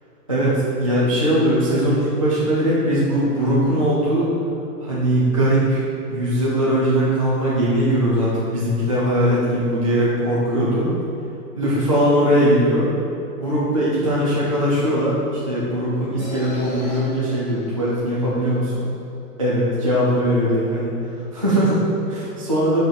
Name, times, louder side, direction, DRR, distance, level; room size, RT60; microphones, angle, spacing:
voice 1, 0.3-4.3 4.8-5.8 6.1-10.9 11.6-12.9 13.4-18.8 19.4-20.9 21.3-22.8, equal, 25° right, -9 dB, 0.3 m, -20 dB
sound 1, 16.2-18.7, equal, 25° left, 0.7 m, -38 dB
5.1 x 4.5 x 4.9 m, 2.9 s
hypercardioid pair, 165°, 47 cm